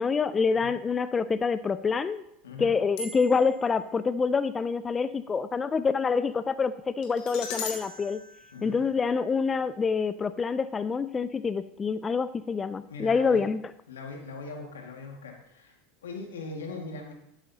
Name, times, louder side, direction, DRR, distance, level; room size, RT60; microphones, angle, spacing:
voice 1, 0.0-2.2 2.6-8.2 8.6-13.7, left 5 dB, 25° left, 14 dB, 0.4 m, -26 dB
sound 1, 3.0-3.6 7.0-9.3, left 4 dB, 65° left, 2.1 m, -40 dB
voice 2, 12.9-13.4 13.9-15.8 16.0-17.1, left 3 dB, 90° left, 2 dB, 1.8 m, -40 dB
12.0 x 9.0 x 2.8 m, 0.78 s
hypercardioid pair, 95°, 0 cm